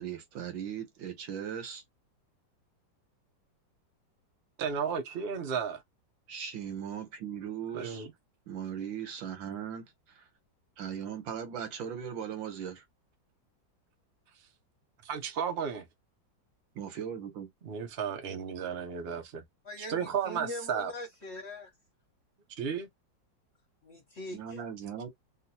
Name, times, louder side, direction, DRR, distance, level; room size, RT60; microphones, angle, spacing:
voice 1, 0.0-1.8 6.3-8.1 8.5-9.9 10.2-10.3 10.8-12.8 16.8-17.5 24.3-25.1, right 8 dB, 90° right, 1.8 m, -38 dB
voice 2, 4.6-5.8 7.7-8.1 15.0-15.8 17.6-19.4 19.9-20.9 22.6-22.9, right 7 dB, 70° right, 0.6 m, -33 dB
voice 3, 19.6-21.7 23.8-24.6, left 1 dB, 50° left, 0.8 m, -42 dB
3.6 x 2.4 x 2.7 m
omnidirectional pair, 2.0 m